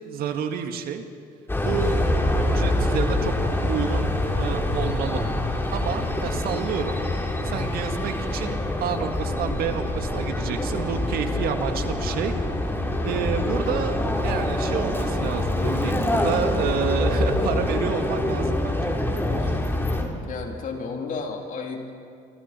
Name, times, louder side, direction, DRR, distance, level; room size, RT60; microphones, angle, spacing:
voice 1, 0.1-1.0 1.6-2.1 2.5-3.3 3.7-4.1 4.4-5.3 5.7-7.0 7.4-12.3 13.0-18.9, right 8 dB, 70° right, 6 dB, 2.0 m, -29 dB
sound 1, 1.5-20.0, left 1 dB, 15° left, 3.8 m, -25 dB
voice 2, 20.2-21.9, left 4 dB, 55° left, 1 dB, 3.5 m, -33 dB
28.0 x 24.5 x 4.5 m, 2.4 s
supercardioid pair, 75°, 16 cm